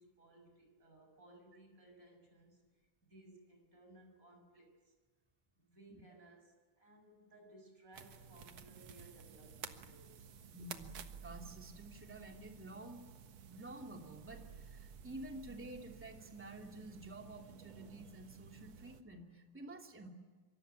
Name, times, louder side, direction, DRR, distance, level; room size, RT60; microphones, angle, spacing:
voice 1, 0.0-4.9 5.6-10.4, right 1 dB, 25° right, 3 dB, 7.0 m, -61 dB
sound 1, 7.9-19.0, right 7 dB, 60° right, 2.4 m, -54 dB
voice 2, 10.5-10.9 11.2-13.0 13.5-20.1, right 1 dB, 5° right, 2 dB, 2.4 m, -50 dB
sound 2, 10.8-12.6 14.2-16.2, right 6 dB, 75° right, 0.7 m, -56 dB
25.5 x 25.0 x 9.1 m, 1.4 s
omnidirectional pair, 3.5 m